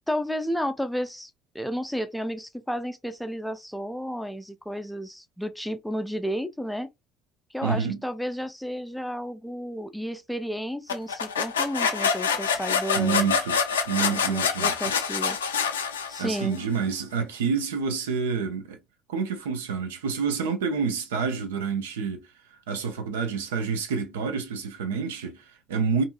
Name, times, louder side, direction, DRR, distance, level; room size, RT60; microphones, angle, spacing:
voice 1, 0.1-6.9 7.5-13.3 14.1-15.8 16.1-16.6, equal, ahead, 0.4 m, -32 dB
voice 2, 7.6-8.0 12.9-13.6 13.9-14.7 16.2-18.8 19.1-22.3 22.7-26.0, right 6 dB, 75° right, 0.4 m, -28 dB
sound 1, 10.9-16.6, left 6 dB, 80° left, 0.3 m, -26 dB
2.6 x 2.5 x 2.4 m
figure-of-eight pair, 55°, 0 cm